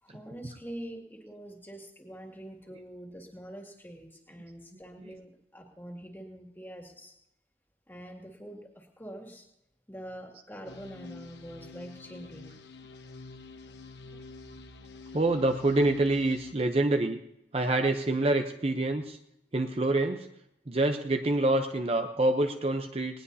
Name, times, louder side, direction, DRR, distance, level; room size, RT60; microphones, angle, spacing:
voice 1, 0.0-7.1 7.9-9.5 9.9-12.5, right 1 dB, 10° left, 1 dB, 2.2 m, -45 dB
sound 1, 10.7-16.5, left 3 dB, 75° left, 1.0 m, -48 dB
voice 2, 15.1-17.2 17.5-19.2 19.5-20.3 20.7-23.2, right 2 dB, 35° right, 6 dB, 0.7 m, -26 dB
19.5 x 19.0 x 2.8 m, 0.82 s
head